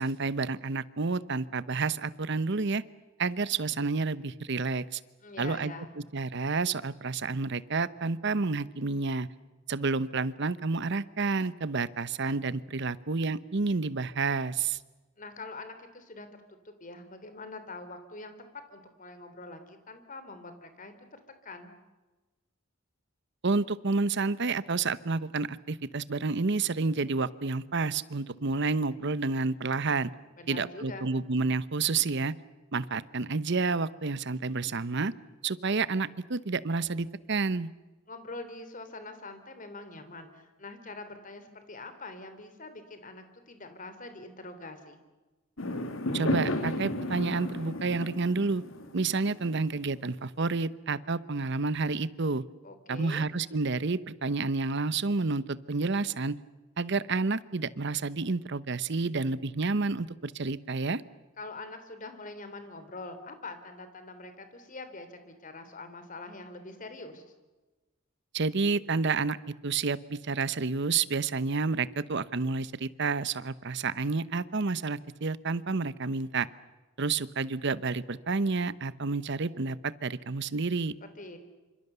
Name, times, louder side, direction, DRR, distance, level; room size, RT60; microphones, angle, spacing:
voice 1, 0.0-2.8 3.2-5.0 5.4-5.7 6.1-9.3 9.7-14.8 23.4-30.1 30.5-32.3 32.7-35.1 35.4-37.7 46.1-48.6 48.9-52.4 52.9-56.4 56.8-61.0 68.3-69.4 69.6-76.5 77.0-80.9, right 4 dB, 60° right, 17 dB, 0.9 m, -29 dB
voice 2, 5.2-6.0 15.2-18.4 18.7-21.7 30.4-31.1 38.1-45.0 52.6-53.3 61.4-67.2 81.0-81.4, left 2 dB, 40° left, 9 dB, 3.4 m, -44 dB
Fireworks, 45.6-50.0, left 1 dB, 90° left, 2.7 m, -33 dB
27.5 x 26.0 x 6.9 m, 1.2 s
head